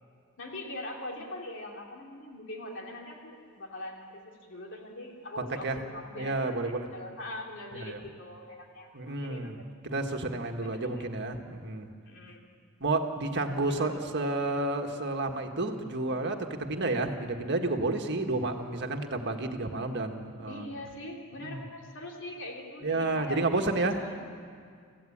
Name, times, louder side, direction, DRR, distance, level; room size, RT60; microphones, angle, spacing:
voice 1, 0.4-9.7 10.6-11.1 12.0-12.5 13.4-14.4 20.5-23.4 23.9-24.2, left 1 dB, 60° left, 0 dB, 3.1 m, -42 dB
voice 2, 5.4-5.8 6.1-6.9 7.7-8.0 8.9-9.5 9.8-11.9 12.8-20.7 21.4-21.6 22.8-24.0, right 2 dB, 55° right, 4 dB, 1.6 m, -31 dB
26.0 x 15.5 x 8.7 m, 2.2 s
head